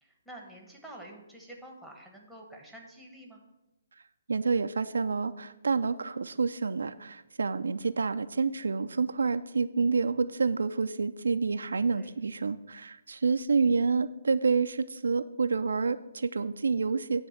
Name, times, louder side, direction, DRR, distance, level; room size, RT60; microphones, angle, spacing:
voice 1, 0.0-3.4 11.9-12.1, right 1 dB, ahead, -1 dB, 1.1 m, -48 dB
voice 2, 4.3-17.3, right 4 dB, 85° right, 10 dB, 0.4 m, -28 dB
10.0 x 3.4 x 7.1 m, 0.97 s
hypercardioid pair, 160°, 0 cm